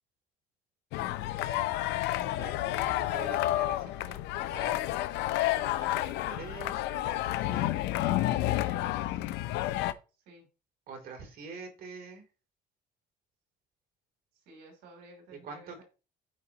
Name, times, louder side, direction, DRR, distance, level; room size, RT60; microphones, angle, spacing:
sound 1, 0.9-9.9, left 15 dB, 90° left, 0.6 m, -30 dB
voice 1, 2.4-4.2 4.5-4.8 5.6-8.6 10.9-12.2 15.4-15.8, right 5 dB, 60° right, 3 dB, 3.0 m, -46 dB
voice 2, 3.6-4.1 9.1-10.0 10.2-10.4 14.4-15.8, right 2 dB, 80° right, 2 dB, 3.1 m, -56 dB
13.0 x 4.9 x 2.9 m, 0.32 s
cardioid pair, 110°, 17 cm